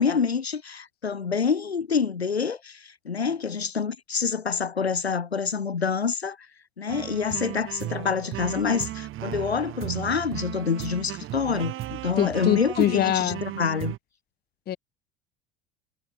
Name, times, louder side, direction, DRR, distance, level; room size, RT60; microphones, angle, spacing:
voice 1, 0.0-6.4 6.8-14.0, left 6 dB, 85° left, 1.8 m, -27 dB
sound 1, 6.9-14.0, right 14 dB, 40° right, 1.3 m, -35 dB
voice 2, 12.2-13.4 14.7-14.8, left 11 dB, 30° left, 0.8 m, -23 dB
figure-of-eight pair, 65°, 31 cm